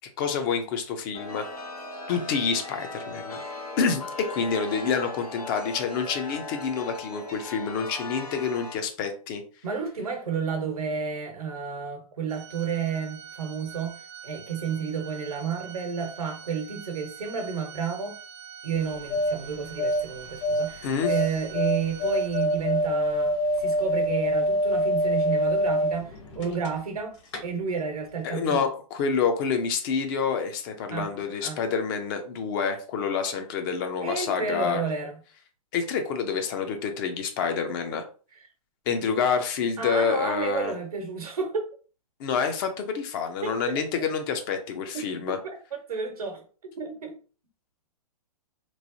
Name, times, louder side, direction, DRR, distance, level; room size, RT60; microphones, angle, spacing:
voice 1, 0.2-1.4 2.1-3.4 3.8-9.4 20.8-21.1 28.2-34.8 35.7-38.0 38.9-40.7 42.2-45.4, left 6 dB, 35° left, 0.5 m, -28 dB
Chime, 1.1-8.8, left 3 dB, 85° left, 0.8 m, -38 dB
voice 2, 9.6-18.2 18.6-23.3 23.6-27.2 27.4-28.7 30.9-31.1 31.4-31.6 34.0-35.2 39.8-41.7 43.4-43.8 44.9-45.1 45.4-45.6 45.9-46.5 46.8-47.2, right 6 dB, 80° right, 0.9 m, -31 dB
Organ, 12.3-22.9, right 8 dB, 35° right, 0.4 m, -45 dB
sound 1, 18.8-27.0 27.3-27.4, equal, 50° left, 1.1 m, -26 dB
3.1 x 2.0 x 2.6 m
hypercardioid pair, 125°, 19 cm